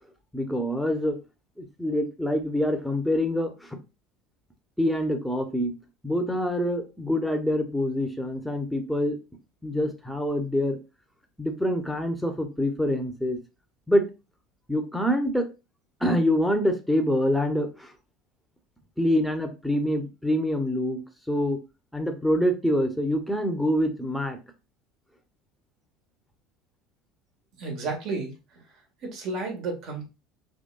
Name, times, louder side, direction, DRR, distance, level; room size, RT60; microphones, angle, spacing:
voice 1, 0.3-1.2 1.6-3.8 4.8-5.7 6.0-9.2 9.6-10.8 11.4-13.4 13.9-14.1 14.7-15.5 16.0-17.9 19.0-21.6 21.9-24.4, equal, ahead, 4 dB, 1.1 m, -25 dB
voice 2, 27.6-28.3 29.0-30.0, right 3 dB, 55° right, 1 dB, 1.8 m, -32 dB
5.4 x 3.4 x 2.6 m, 0.27 s
hypercardioid pair, 70°, 0 cm